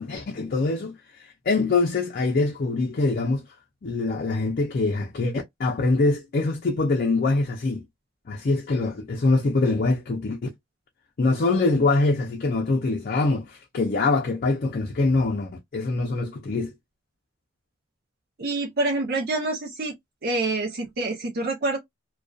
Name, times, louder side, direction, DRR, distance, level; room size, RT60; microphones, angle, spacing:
voice 1, 0.0-3.4 3.8-7.8 8.3-10.4 11.2-16.7, left 3 dB, 50° left, 0.5 m, -24 dB
voice 2, 18.4-19.9 20.2-21.8, right 2 dB, 50° right, 0.6 m, -26 dB
2.4 x 2.2 x 2.3 m
head